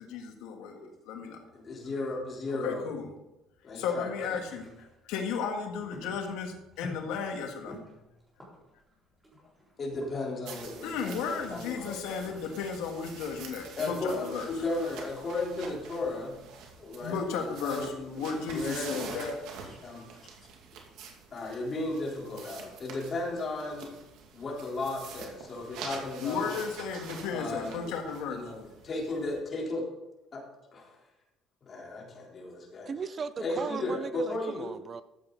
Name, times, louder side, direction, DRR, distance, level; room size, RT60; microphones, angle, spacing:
voice 1, 0.0-1.4 2.6-3.1 3.8-7.8 10.8-14.5 17.0-19.3 26.2-28.4, left 6 dB, 85° left, 3 dB, 1.7 m, -34 dB
voice 2, 1.5-2.8 3.6-4.3 9.8-11.9 12.4-12.5 13.8-16.4 16.8-19.3 19.6-20.0 20.4-20.5 21.3-23.9 24.3-26.5 27.3-29.9 30.3-30.4 30.7-30.9 31.6-32.9 33.4-34.7, left 2 dB, 30° left, -3 dB, 3.6 m, -35 dB
sound 1, 4.3-10.7, left 2 dB, 10° right, 4.1 m, -50 dB
sound 2, 10.4-29.4, right 5 dB, 75° right, 2.2 m, -47 dB
voice 3, 32.9-35.0, right 5 dB, 30° right, 14 dB, 0.4 m, -37 dB
13.5 x 8.3 x 4.0 m, 0.94 s
cardioid pair, 135°, 0 cm